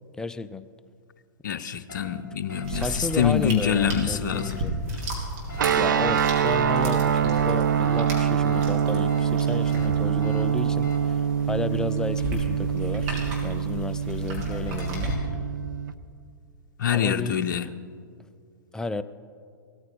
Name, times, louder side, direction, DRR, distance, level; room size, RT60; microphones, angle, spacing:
voice 1, 0.2-0.7 2.7-4.7 5.8-11.2 11.5-13.1 13.4-15.2 16.9-17.4 18.7-19.0, left 3 dB, 5° left, 13 dB, 0.3 m, -32 dB
voice 2, 1.4-4.6 16.8-17.7, left 8 dB, 60° left, 9 dB, 0.7 m, -25 dB
sound 1, 1.9-2.0 2.5-2.6 3.1-3.2 3.7-3.9 4.3-4.5 5.5-5.7 6.1-6.3 6.7-6.8 7.3-7.4 7.9-8.0 8.5-8.6 9.1-9.3 9.6-9.9 10.2-10.4 10.8-11.0 13.8-15.2, left 1 dB, 25° left, 2.4 m, -43 dB
sound 2, 2.6-15.1, right 1 dB, 45° right, 3.8 m, -35 dB
sound 3, 5.6-15.9, right 8 dB, 65° right, 0.7 m, -25 dB
17.5 x 13.5 x 4.2 m, 2.3 s
figure-of-eight pair, 110°, 11 cm